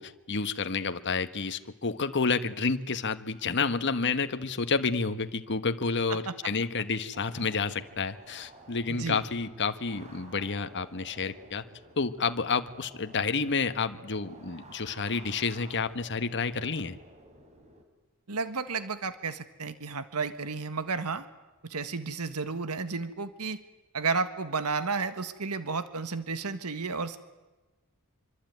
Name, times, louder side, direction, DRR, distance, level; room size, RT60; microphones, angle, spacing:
voice 1, 0.0-11.6 12.0-17.0, left 4 dB, 55° left, 10 dB, 1.3 m, -30 dB
sound 1, 7.1-17.8, right 2 dB, 30° right, 3.9 m, -53 dB
voice 2, 8.9-9.2 18.3-21.3 21.6-23.6 23.9-27.2, right 4 dB, 90° right, 11 dB, 1.5 m, -32 dB
25.5 x 24.5 x 9.4 m, 1.2 s
head